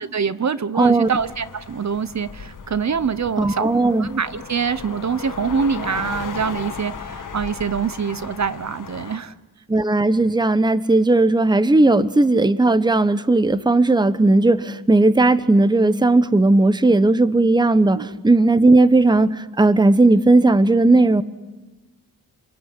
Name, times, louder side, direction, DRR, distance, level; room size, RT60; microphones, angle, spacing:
voice 1, 0.1-3.7 4.0-9.3 17.9-18.1, right 6 dB, 45° right, 15 dB, 1.0 m, -24 dB
voice 2, 0.8-1.1 3.4-4.1 9.7-21.2, right 2 dB, 10° right, 14 dB, 1.0 m, -16 dB
sound 1, 1.0-9.2, left 6 dB, 55° left, 2.0 m, -36 dB
28.0 x 21.0 x 10.0 m, 1.1 s
cardioid pair, 85°, 37 cm